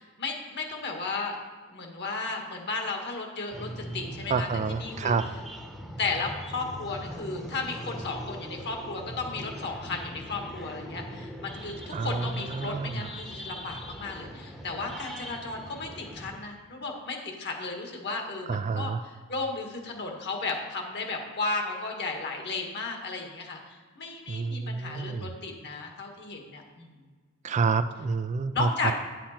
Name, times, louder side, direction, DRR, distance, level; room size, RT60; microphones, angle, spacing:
voice 1, 0.0-1.4 1.7-5.1 6.0-27.0 28.5-28.9, left 3 dB, 50° left, 2 dB, 1.6 m, -34 dB
sound 1, 3.5-16.4, equal, ahead, 0.9 m, -41 dB
voice 2, 4.3-5.2 11.9-13.1 18.1-18.2 18.5-19.0 24.3-25.3 27.4-28.9, right 4 dB, 30° right, 11 dB, 0.3 m, -28 dB
10.0 x 7.5 x 4.3 m, 1.5 s
head